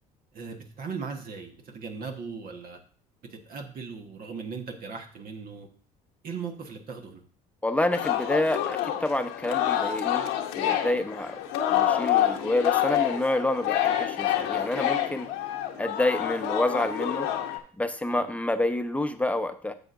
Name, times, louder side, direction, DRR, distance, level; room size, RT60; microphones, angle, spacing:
voice 1, 0.3-2.8 3.2-5.7 6.2-7.2 18.1-18.2, right 5 dB, 50° right, 3 dB, 1.4 m, -38 dB
voice 2, 7.6-10.3 10.5-11.4 11.7-15.3 15.8-17.3 17.8-19.7, left 1 dB, 5° left, 8 dB, 0.9 m, -28 dB
Singing, 7.9-17.6, left 11 dB, 75° left, 1.1 m, -27 dB
10.5 x 7.0 x 2.6 m, 0.43 s
hypercardioid pair, 65°, 18 cm